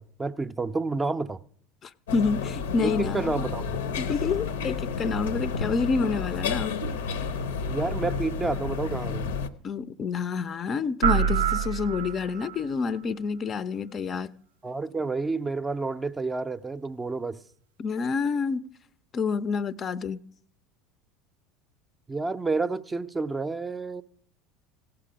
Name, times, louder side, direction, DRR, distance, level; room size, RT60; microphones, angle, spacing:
voice 1, 0.0-1.4 2.8-3.8 7.7-9.3 14.6-17.4 22.1-24.0, right 3 dB, 20° right, 0.5 m, -30 dB
voice 2, 1.8-3.2 4.0-6.7 9.6-14.3 17.8-18.6 19.1-20.2, left 5 dB, 35° left, 0.5 m, -28 dB
sound 1, 2.1-9.5, left 5 dB, 75° left, 0.7 m, -31 dB
sound 2, 11.0-12.6, right 7 dB, 80° right, 0.3 m, -25 dB
17.0 x 5.9 x 5.0 m
hypercardioid pair, 75°, 0 cm